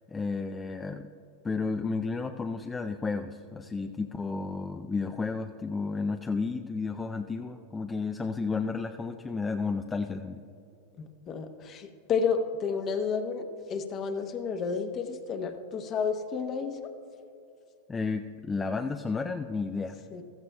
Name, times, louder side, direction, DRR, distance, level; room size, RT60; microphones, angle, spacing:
voice 1, 0.1-1.1 1.4-10.4 17.9-20.0, left 4 dB, 15° left, 6 dB, 0.4 m, -32 dB
voice 2, 11.0-16.9 20.1-20.2, left 5 dB, 35° left, 7 dB, 1.0 m, -31 dB
15.5 x 14.0 x 2.3 m, 2.7 s
hypercardioid pair, 100°, 0 cm